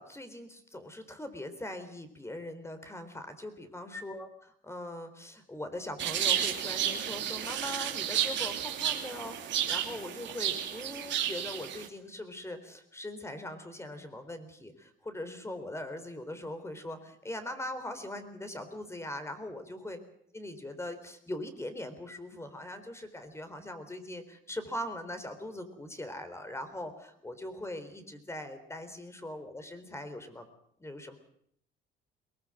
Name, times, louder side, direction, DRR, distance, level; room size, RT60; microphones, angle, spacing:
voice 1, 0.0-20.0 20.3-30.5 30.8-31.2, left 1 dB, 15° left, 9 dB, 4.0 m, -41 dB
sound 1, 6.0-11.9, right 10 dB, 65° right, 2.8 m, -32 dB
22.5 x 19.5 x 7.8 m, 0.67 s
cardioid pair, 90°, 20 cm